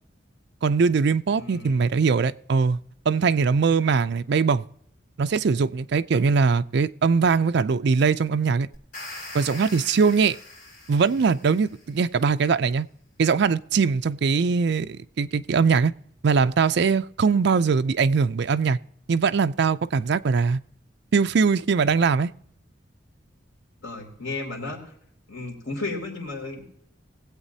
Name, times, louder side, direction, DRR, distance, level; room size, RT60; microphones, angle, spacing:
voice 1, 0.6-2.8 3.1-4.6 5.2-8.7 9.3-10.4 10.9-12.9 13.2-15.9 16.2-18.8 19.1-20.6 21.1-22.3, right 5 dB, 60° right, 0.4 m, -21 dB
voice 2, 1.4-1.8 23.8-24.9 25.3-26.7, left 2 dB, 85° left, 3.0 m, -34 dB
sound 1, 8.7-11.9, left 2 dB, 50° left, 3.9 m, -42 dB
20.0 x 8.1 x 2.7 m
head